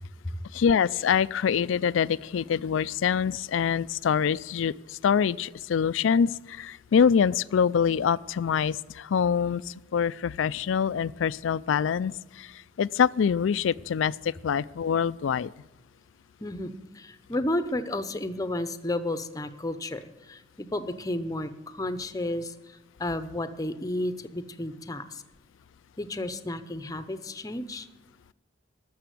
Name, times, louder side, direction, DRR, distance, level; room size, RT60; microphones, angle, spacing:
voice 1, 0.5-15.5, left 7 dB, 85° left, 20 dB, 0.4 m, -25 dB
voice 2, 16.4-25.2 26.0-27.9, left 1 dB, 20° left, 11 dB, 0.7 m, -32 dB
12.5 x 7.1 x 9.3 m, 1.1 s
head